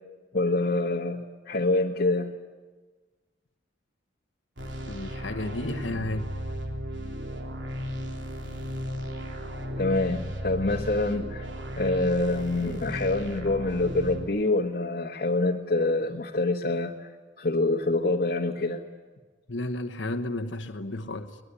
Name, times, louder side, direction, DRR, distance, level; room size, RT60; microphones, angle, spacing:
voice 1, 0.3-2.3 9.8-11.5 11.8-17.1 17.4-18.8, left 2 dB, 50° left, 1.4 m, -26 dB
sound 1, 4.6-14.2, equal, 65° right, 3.4 m, -35 dB
voice 2, 4.9-6.3 19.5-21.4, left 1 dB, 70° left, 1.3 m, -32 dB
23.5 x 20.5 x 9.9 m
head